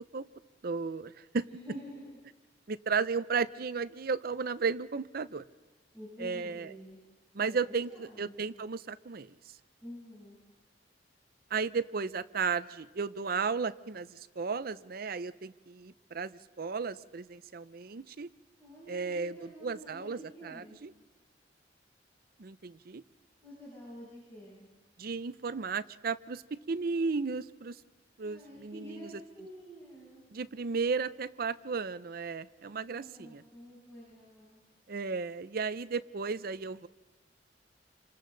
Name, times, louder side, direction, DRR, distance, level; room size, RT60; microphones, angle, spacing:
voice 1, 0.6-1.5 2.7-5.4 6.2-6.7 7.3-9.4 11.5-18.3 18.9-20.9 22.4-23.0 25.0-27.8 28.2-29.1 30.3-33.4 34.9-36.9, right 5 dB, 55° right, 14 dB, 0.6 m, -34 dB
voice 2, 1.4-2.1 5.9-7.0 7.5-8.4 9.8-10.4 18.6-20.8 23.4-24.7 28.2-30.2 32.8-34.6, equal, 15° left, -9 dB, 8.0 m, -48 dB
28.5 x 25.5 x 4.0 m, 1.2 s
head